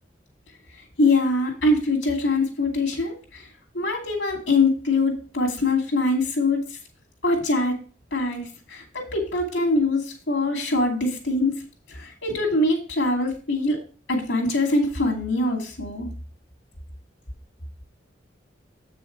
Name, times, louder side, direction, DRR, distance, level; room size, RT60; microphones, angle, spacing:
voice 1, 1.0-3.5 3.7-6.6 7.2-7.8 8.1-8.4 8.7-11.5 11.9-13.8 14.1-16.1, left 2 dB, 80° left, 1 dB, 2.7 m, -23 dB
7.9 x 6.2 x 4.6 m, 0.36 s
head